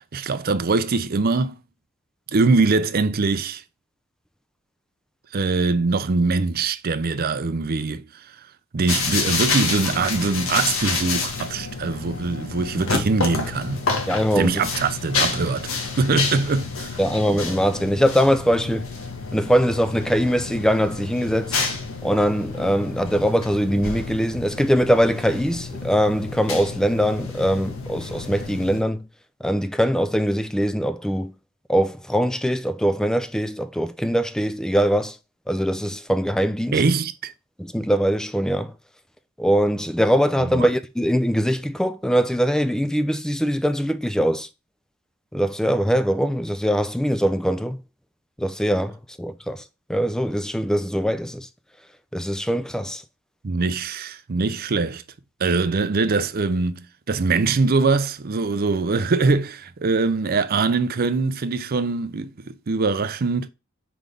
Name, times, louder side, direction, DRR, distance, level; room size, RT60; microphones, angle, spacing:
voice 1, 0.0-1.6 2.3-3.6 5.3-8.1 8.7-13.9 14.4-15.7 16.0-16.9 36.7-37.3 40.4-40.7 53.4-55.0 55.4-63.5, right 4 dB, 45° right, 0.5 m, -22 dB
sound 1, 8.9-28.8, left 4 dB, 80° left, 1.5 m, -29 dB
voice 2, 14.1-14.6 17.0-18.9 19.3-21.6 22.0-29.0 29.4-31.3 31.7-35.2 35.5-36.8 37.6-38.7 39.4-44.5 45.3-47.8 48.4-49.6 49.9-51.5 52.1-53.0, equal, 5° left, 0.4 m, -22 dB
4.7 x 3.9 x 5.3 m
head